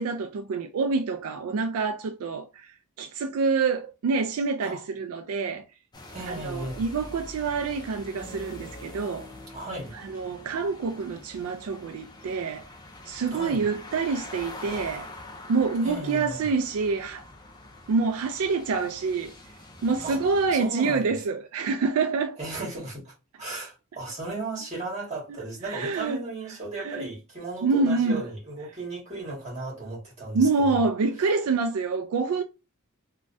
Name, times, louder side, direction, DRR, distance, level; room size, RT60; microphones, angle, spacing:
voice 1, 0.0-5.6 6.2-9.3 9.9-12.7 13.1-15.1 15.5-17.3 17.9-19.3 19.8-22.4 25.6-26.2 26.8-27.1 27.6-28.2 30.3-32.4, right 4 dB, 75° right, 0.3 m, -27 dB
sound 1, 5.9-20.5, left 1 dB, 20° left, 0.5 m, -44 dB
voice 2, 6.1-6.8 9.5-9.9 13.3-13.6 15.8-16.4 20.0-21.1 22.4-30.9 31.2-31.3, right 2 dB, 30° right, 1.7 m, -36 dB
3.1 x 2.3 x 2.5 m
head